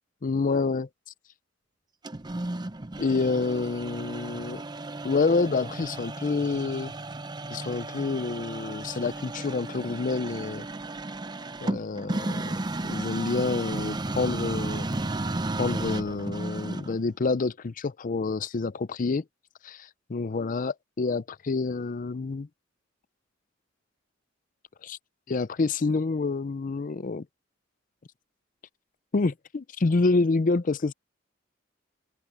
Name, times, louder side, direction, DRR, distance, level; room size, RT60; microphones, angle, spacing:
voice 1, 0.2-0.9 3.0-4.6 5.0-6.9 7.5-10.7 11.6-12.5 12.8-14.9 15.6-19.2 19.6-22.5 24.8-25.0 25.3-27.2 29.1-30.9, left 3 dB, 45° left, 0.5 m, -28 dB
sound 1, 2.0-17.0, right 2 dB, 20° right, 0.6 m, -34 dB
open air
head